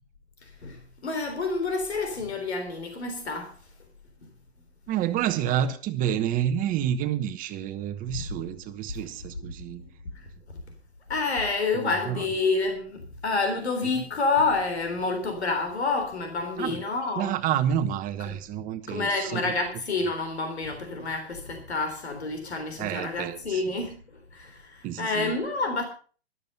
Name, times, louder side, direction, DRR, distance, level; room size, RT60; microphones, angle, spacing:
voice 1, 0.4-3.6 9.0-9.1 9.4-9.5 10.1-10.3 11.1-17.3 18.3-18.4 18.9-24.0 24.3-25.8, left 3 dB, 85° left, 3.7 m, -28 dB
voice 2, 4.9-9.8 11.7-12.3 13.8-13.9 16.6-16.8 17.2-19.5 22.8-23.6 24.8-25.3, right 10 dB, 25° right, 1.0 m, -29 dB
13.5 x 12.5 x 5.3 m
hypercardioid pair, 130°, 32 cm